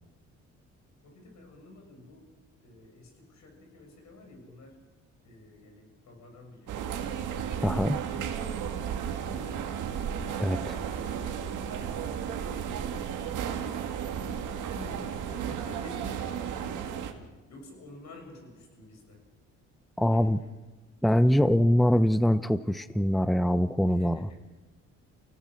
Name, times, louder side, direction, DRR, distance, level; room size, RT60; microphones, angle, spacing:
voice 1, 1.0-2.3 2.6-4.8 5.2-7.1 8.0-9.9 10.2-13.8 14.1-17.0 17.5-19.3 20.0-20.5 23.9-24.4, left 2 dB, 65° left, 3 dB, 7.0 m, -50 dB
sound 1, 6.7-17.1, right 8 dB, 85° right, 2.0 m, -34 dB
voice 2, 7.6-8.0 10.4-10.6 20.0-20.4 21.0-24.2, equal, ahead, 13 dB, 0.7 m, -23 dB
28.5 x 17.5 x 6.4 m, 1.2 s
cardioid pair, 90°, 30 cm